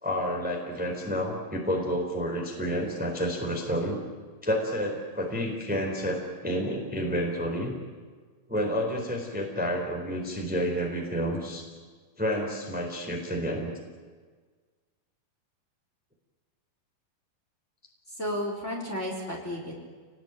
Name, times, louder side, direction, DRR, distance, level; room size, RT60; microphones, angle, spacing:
voice 1, 0.0-4.0 4.4-7.7 8.5-11.7 12.2-13.7, equal, 5° right, 1 dB, 4.0 m, -30 dB
voice 2, 18.1-19.7, equal, 20° left, 0 dB, 4.4 m, -33 dB
29.5 x 20.0 x 9.3 m, 1.5 s
omnidirectional pair, 3.8 m